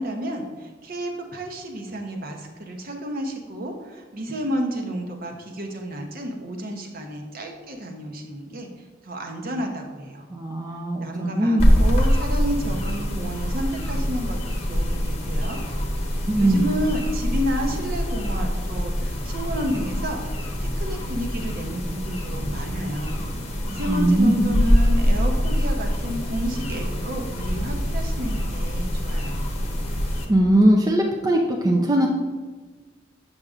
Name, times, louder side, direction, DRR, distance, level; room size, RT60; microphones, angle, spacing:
voice 1, 0.0-8.7 9.0-10.3 11.0-15.6 16.4-20.2 20.6-23.2 23.6-29.4, equal, 50° right, 3 dB, 0.8 m, -31 dB
voice 2, 10.3-11.6 16.3-16.6 23.9-24.3 30.3-32.1, right 1 dB, 20° right, 0 dB, 0.4 m, -20 dB
sound 1, 11.6-30.2, equal, 35° left, 0.9 m, -24 dB
7.3 x 6.5 x 2.4 m, 1.4 s
head